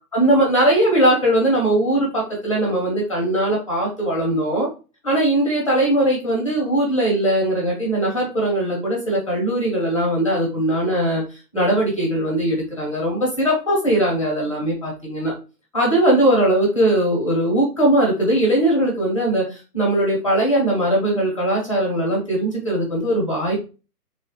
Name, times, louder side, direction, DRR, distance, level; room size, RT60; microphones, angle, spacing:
voice 1, 0.1-4.7 5.0-15.3 15.7-23.6, right 1 dB, 20° left, -3 dB, 0.5 m, -20 dB
3.1 x 2.3 x 2.8 m, 0.33 s
hypercardioid pair, 150°, 48 cm